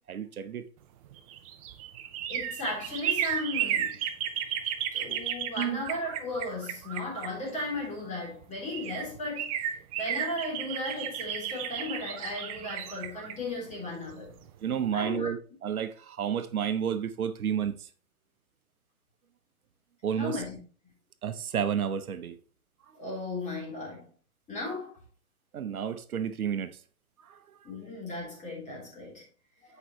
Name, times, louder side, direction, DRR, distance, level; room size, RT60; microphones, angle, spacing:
voice 1, 0.1-0.7 5.6-5.8 14.6-17.7 20.0-20.4 21.2-22.4 25.5-26.8 27.3-27.4, right 8 dB, 85° right, 0.8 m, -31 dB
sound 1, 1.0-7.9 8.4-8.5 8.7-14.5 14.8-14.9, right 10 dB, 25° right, 0.5 m, -34 dB
voice 2, 2.3-4.0 4.9-9.6 10.0-14.3 14.9-15.3 20.2-20.6 22.9-24.1 24.5-25.0 27.6-29.2, left 2 dB, 15° left, 3.3 m, -36 dB
8.2 x 5.4 x 3.1 m
hypercardioid pair, 120°, 42 cm